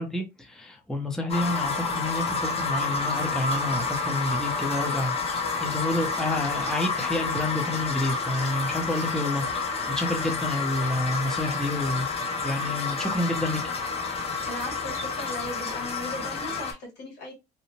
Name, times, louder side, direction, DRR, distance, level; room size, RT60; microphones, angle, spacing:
voice 1, 0.0-12.1 12.4-13.6, left 1 dB, 5° left, 0.6 m, -29 dB
sound 1, 1.3-16.7, left 4 dB, 35° left, 0.8 m, -29 dB
voice 2, 14.5-17.3, left 1 dB, 85° left, 1.6 m, -37 dB
2.7 x 2.0 x 2.8 m
cardioid pair, 110°, 17 cm